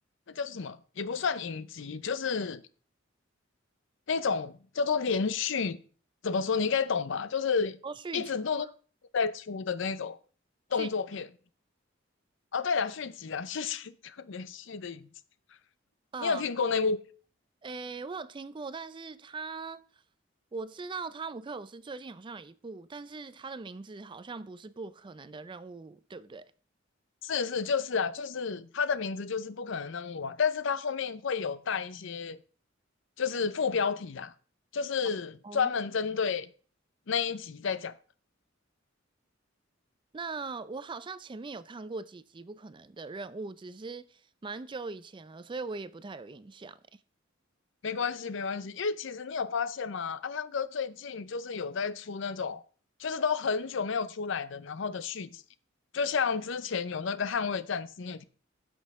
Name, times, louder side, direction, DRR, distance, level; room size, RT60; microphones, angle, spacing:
voice 1, 0.3-2.6 4.1-5.8 6.2-7.8 8.1-8.7 9.1-10.2 10.7-11.3 12.5-15.0 16.2-17.0 27.2-32.4 33.2-34.3 34.7-36.5 37.1-37.9 47.8-52.6 53.0-55.4 55.9-58.2, left 5 dB, 70° left, 0.6 m, -31 dB
voice 2, 7.8-8.3 8.6-8.7 10.7-11.2 16.1-16.4 17.6-19.8 20.5-26.5 35.4-35.7 40.1-46.8, right 4 dB, 25° right, 0.4 m, -40 dB
16.0 x 6.2 x 3.6 m
head